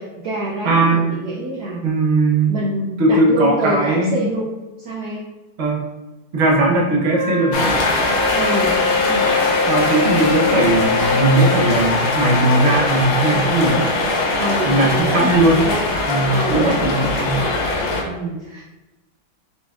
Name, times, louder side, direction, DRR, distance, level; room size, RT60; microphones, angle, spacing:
voice 1, 0.0-1.8 2.5-4.5 4.8-5.3 8.3-8.7 14.4-15.9 16.3-17.5 18.0-18.6, right 1 dB, 65° right, -5 dB, 1.1 m, -26 dB
voice 2, 0.6-1.0 1.8-2.5 3.0-4.3 5.6-5.8 6.3-7.8 9.7-13.9 14.6-15.6 16.1-17.4, right 2 dB, 50° right, -2 dB, 0.8 m, -18 dB
Wind instrument woodwind instrument, 7.1-11.9, left 4 dB, 85° right, 1.6 m, -23 dB
sound 1, 7.5-18.0, left 3 dB, 85° left, 1.6 m, -21 dB
4.3 x 4.2 x 2.3 m, 1.1 s
omnidirectional pair, 2.1 m